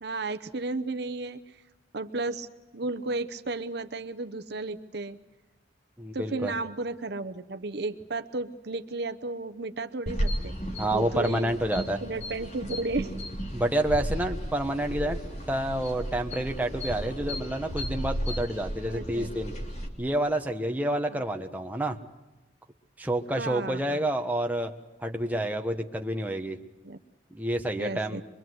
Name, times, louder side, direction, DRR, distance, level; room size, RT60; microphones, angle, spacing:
voice 1, 0.0-1.4 1.9-2.5 2.7-5.2 6.1-10.5 10.9-11.5 12.0-13.2 18.9-19.3 21.1-21.2 23.4-24.0 26.8-27.0 27.7-28.2, right 3 dB, 60° right, 8 dB, 0.9 m, -33 dB
voice 2, 6.0-6.6 10.8-12.0 13.5-15.2 15.5-19.5 20.0-22.0 23.0-24.7 25.0-26.6 27.3-28.2, right 1 dB, 10° right, 3 dB, 1.2 m, -29 dB
sound 1, 10.1-19.9, equal, 35° left, 3.2 m, -34 dB
24.5 x 24.0 x 7.9 m, 1.1 s
head